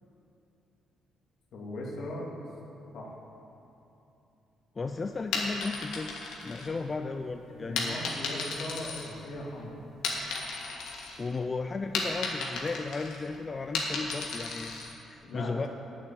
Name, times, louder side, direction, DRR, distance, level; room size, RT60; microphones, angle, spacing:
voice 1, 1.5-2.3 2.9-3.1 7.5-9.8 15.2-15.7, left 1 dB, 70° left, -3 dB, 2.5 m, -39 dB
voice 2, 4.8-6.1 6.4-8.0 11.2-15.7, left 4 dB, 30° left, 6 dB, 0.4 m, -35 dB
sound 1, 5.2-7.1 7.8-9.5 9.9-11.2 11.5-14.9, left 4 dB, 85° left, 1.8 m, -34 dB
9.3 x 7.5 x 8.0 m, 2.9 s
cardioid pair, 90°, 0 cm